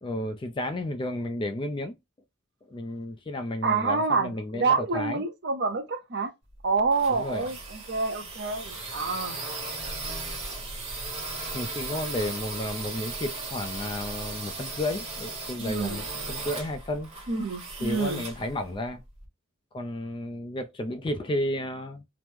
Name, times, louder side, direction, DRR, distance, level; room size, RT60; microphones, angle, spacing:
voice 1, 0.0-2.0 2.7-5.2 7.1-7.4 11.5-17.1 17.8-19.0 19.7-22.1, left 1 dB, 25° left, 0.3 m, -32 dB
voice 2, 3.6-6.3 6.6-9.4 15.6-16.0 17.3-18.2, right 4 dB, 55° right, 0.6 m, -27 dB
sound 1, 6.5-19.3, right 3 dB, 30° right, 0.9 m, -37 dB
3.0 x 2.0 x 3.4 m
head